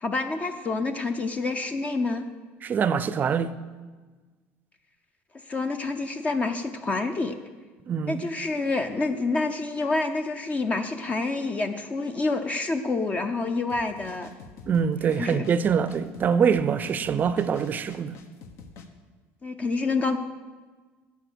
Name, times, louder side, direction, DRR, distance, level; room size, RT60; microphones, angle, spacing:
voice 1, 0.0-2.3 5.5-7.4 8.1-14.3 15.1-15.5 19.4-20.2, left 3 dB, 25° left, 0.7 m, -27 dB
voice 2, 2.6-3.5 7.9-8.3 14.7-18.2, right 7 dB, 35° right, 0.5 m, -24 dB
sound 1, 13.7-18.9, left 4 dB, 60° left, 1.3 m, -46 dB
13.0 x 8.3 x 6.3 m
cardioid pair, 125°, 5 cm